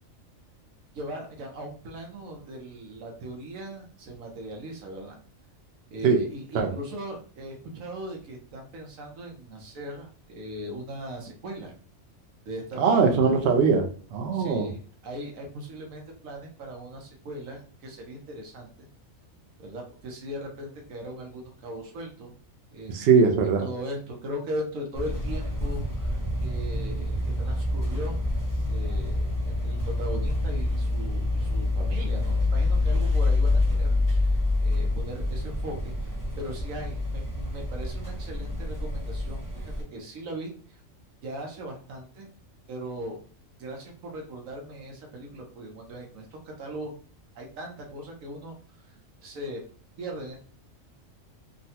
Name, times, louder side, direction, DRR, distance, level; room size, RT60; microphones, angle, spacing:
voice 1, 0.9-5.2 5.9-11.7 12.5-13.3 14.3-18.7 19.6-22.3 22.7-23.3 23.6-28.2 28.6-40.8 41.2-42.3 42.7-43.2 43.6-46.9 47.3-48.5 48.8-48.9 49.2-49.6 50.0-50.4, right 1 dB, 85° right, 1 dB, 1.2 m, -39 dB
voice 2, 12.8-14.7 22.9-23.7, right 5 dB, 60° right, 3 dB, 0.7 m, -21 dB
sound 1, 24.9-39.8, left 2 dB, 15° right, 0.9 m, -27 dB
3.7 x 2.1 x 2.8 m, 0.43 s
omnidirectional pair, 1.4 m